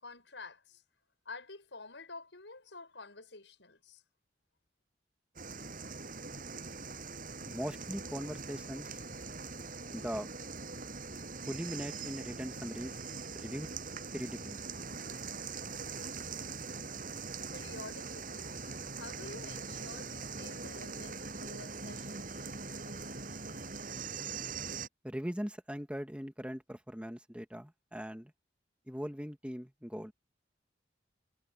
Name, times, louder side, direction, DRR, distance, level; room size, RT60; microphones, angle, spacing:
voice 1, 0.0-0.8 1.2-4.0 17.5-22.5 22.8-23.2, left 3 dB, 85° left, 6.3 m, -50 dB
sound 1, 5.4-24.9, right 4 dB, 50° right, 7.3 m, -42 dB
voice 2, 7.5-9.0 9.9-10.3 11.5-13.0 13.3-13.7 14.1-14.6 25.0-28.3 28.9-30.1, equal, 5° right, 2.0 m, -40 dB
head